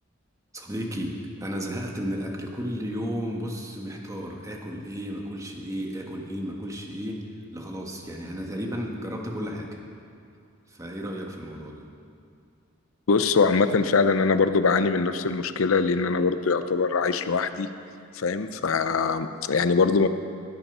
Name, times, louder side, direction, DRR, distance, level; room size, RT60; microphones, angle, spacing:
voice 1, 0.5-7.3 7.5-9.7 10.7-11.9, equal, 15° right, 0 dB, 1.5 m, -33 dB
voice 2, 13.1-17.7 18.1-20.1, left 4 dB, 80° left, 10 dB, 0.6 m, -22 dB
16.5 x 8.7 x 5.5 m, 2.4 s
head